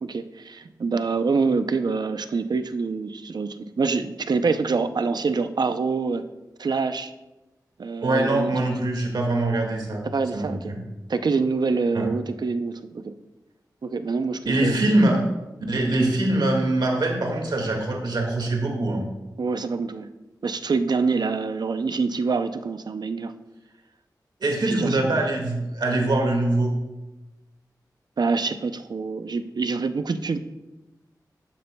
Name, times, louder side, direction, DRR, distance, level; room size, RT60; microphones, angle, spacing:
voice 1, 0.0-6.2 6.6-7.1 7.8-8.5 10.0-10.7 11.1-13.1 13.8-14.9 19.4-20.1 20.4-23.3 24.6-25.1 28.2-30.4, right 4 dB, 70° right, 10 dB, 0.5 m, -26 dB
voice 2, 8.0-10.0 10.3-10.8 11.9-12.1 14.5-15.2 15.7-19.0 24.4-26.7, right 2 dB, 90° right, 1 dB, 1.9 m, -23 dB
12.5 x 9.2 x 2.3 m, 1.0 s
wide cardioid pair, 75°, 7 cm